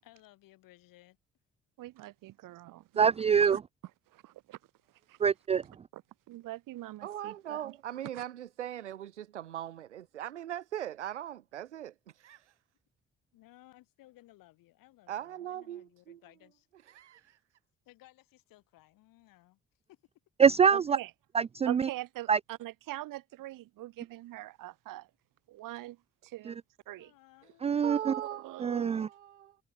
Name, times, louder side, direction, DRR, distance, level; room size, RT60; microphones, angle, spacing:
voice 1, 0.0-1.2 13.3-16.7 17.8-19.6 19.9-20.0 27.0-27.9, left 17 dB, 70° left, 8.0 m, -60 dB
voice 2, 1.8-3.0 3.4-3.6 4.1-4.6 4.9-5.2 5.9-6.0 6.3-7.7 8.1-8.2 20.7-21.1 21.6-25.1 25.5-27.1 28.1-29.1, right 16 dB, 70° right, 3.0 m, -43 dB
voice 3, 3.0-3.6 5.2-5.6 20.4-21.0 21.3-21.8 22.3-22.4 27.6-28.1 28.6-29.1, right 7 dB, 20° right, 0.3 m, -24 dB
voice 4, 7.0-12.5 15.1-16.2 16.9-17.4 27.8-29.6, right 11 dB, 90° right, 1.3 m, -40 dB
hypercardioid pair, 45°, 34 cm